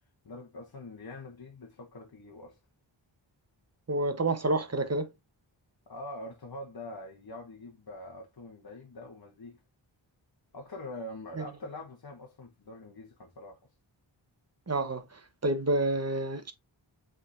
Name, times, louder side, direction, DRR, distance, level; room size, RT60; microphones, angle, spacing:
voice 1, 0.2-2.6 5.9-9.6 10.5-13.7, left 2 dB, 50° left, 1.2 m, -44 dB
voice 2, 3.9-5.1 11.4-11.5 14.7-16.5, right 2 dB, 30° right, 1.1 m, -29 dB
4.9 x 3.8 x 2.6 m
cardioid pair, 40°, 47 cm